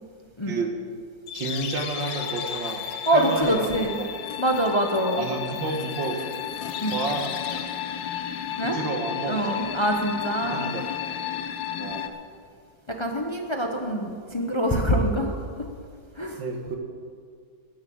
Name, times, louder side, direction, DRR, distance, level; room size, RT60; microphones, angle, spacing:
sound 1, 1.3-12.1, left 9 dB, 70° left, 1.2 m, -33 dB
voice 1, 1.3-2.8 3.1-4.1 5.2-6.2 6.9-7.3 8.6-9.7 10.4-10.9 11.8-12.2 16.4-16.8, right 3 dB, 80° right, 4 dB, 2.1 m, -31 dB
voice 2, 3.1-3.9 4.4-5.2 6.8-6.9 8.6-8.8 9.3-10.7 12.9-15.3 15.6-15.7 16.2-16.4, right 1 dB, 30° left, 2 dB, 0.5 m, -24 dB
12.5 x 7.3 x 8.6 m, 2.1 s
omnidirectional pair, 2.0 m